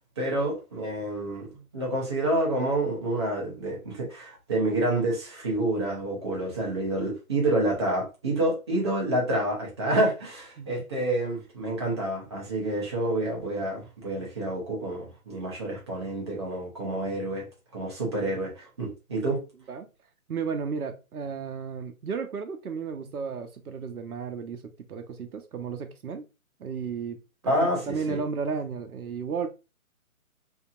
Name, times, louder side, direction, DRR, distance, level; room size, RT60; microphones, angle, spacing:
voice 1, 0.2-17.5 17.7-19.4 27.5-28.2, right 1 dB, 20° right, 0.6 m, -28 dB
voice 2, 20.3-24.6 24.9-26.3 26.6-29.5, right 5 dB, 85° right, 0.7 m, -33 dB
2.8 x 2.6 x 2.3 m
figure-of-eight pair, 150°, 43 cm